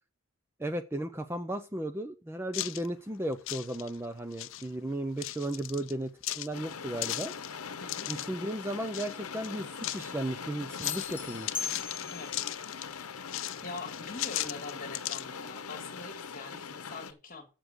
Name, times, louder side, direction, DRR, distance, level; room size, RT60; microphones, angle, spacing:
voice 1, 0.6-7.3 8.1-11.6, right 1 dB, 10° right, 8 dB, 0.5 m, -35 dB
sound 1, 2.5-2.9 3.3-4.0 4.3-4.7 5.2-5.9 6.2-8.3 8.9-9.2 9.4-10.1 10.7-11.1 11.5-12.9 13.3-15.2, left 15 dB, 60° left, 0.4 m, -37 dB
sound 2, 6.5-17.1, left 6 dB, 85° left, 0.9 m, -42 dB
sound 3, 10.8-12.5, left 7 dB, 10° left, 2.0 m, -38 dB
voice 2, 12.1-12.4 13.6-17.5, left 3 dB, 40° left, 6 dB, 1.9 m, -44 dB
7.6 x 7.1 x 6.6 m, 0.33 s
head